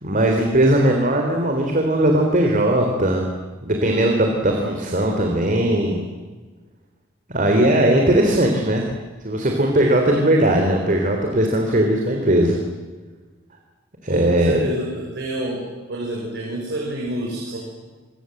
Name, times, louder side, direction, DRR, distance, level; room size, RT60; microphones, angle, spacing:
voice 1, 0.0-3.3 3.6-6.0 7.3-8.8 9.2-12.6 14.0-14.7, right 1 dB, 40° right, 2 dB, 3.7 m, -18 dB
voice 2, 14.1-15.6 15.9-17.6, right 1 dB, 60° right, -2 dB, 6.3 m, -28 dB
27.5 x 23.5 x 8.0 m, 1.3 s
head